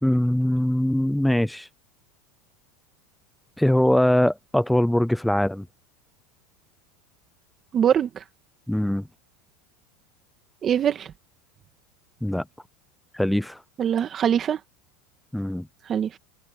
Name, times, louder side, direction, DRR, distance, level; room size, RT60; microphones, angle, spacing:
voice 1, 0.0-1.7 3.6-5.7 8.7-9.0 12.2-12.4 13.1-13.6 15.3-15.7, left 1 dB, ahead, 0.4 m, -22 dB
voice 2, 7.7-8.2 10.6-11.1 13.8-14.6 15.9-16.2, right 9 dB, 30° right, 2.0 m, -23 dB
supercardioid pair, 130°, 0 cm